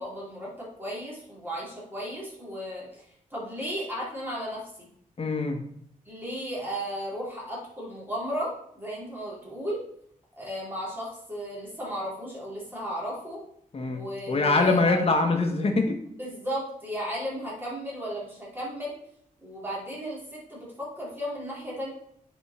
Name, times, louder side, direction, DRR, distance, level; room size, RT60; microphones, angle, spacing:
voice 1, 0.0-3.0 3.3-4.9 6.0-9.8 10.4-13.4 13.8-15.0 16.0-18.9 19.4-21.9, equal, 15° right, -6 dB, 3.5 m, -35 dB
voice 2, 5.2-5.6 13.7-16.0, left 3 dB, 45° left, 4 dB, 1.4 m, -24 dB
9.5 x 4.6 x 4.3 m, 0.67 s
wide cardioid pair, 105°, 14 cm